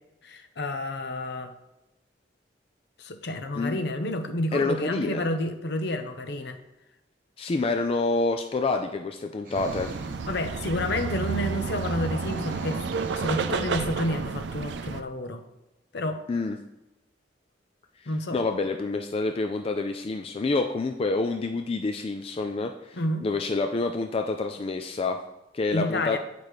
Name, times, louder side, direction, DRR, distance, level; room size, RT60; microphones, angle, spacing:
voice 1, 0.2-1.5 3.0-6.6 10.3-12.8 13.1-15.4 15.9-16.2 18.1-18.4 22.9-23.3 25.7-26.2, left 1 dB, 65° left, 7 dB, 0.7 m, -30 dB
voice 2, 4.5-5.3 7.4-9.9 16.3-16.6 18.3-25.2 25.5-26.2, left 3 dB, 30° left, 5 dB, 0.3 m, -27 dB
sound 1, 9.4-10.2 10.8-10.9 11.8-13.6, right 1 dB, 45° right, 1.3 m, -43 dB
sound 2, 9.5-15.0, right 5 dB, 70° right, 0.4 m, -31 dB
8.4 x 5.1 x 3.1 m, 0.98 s
head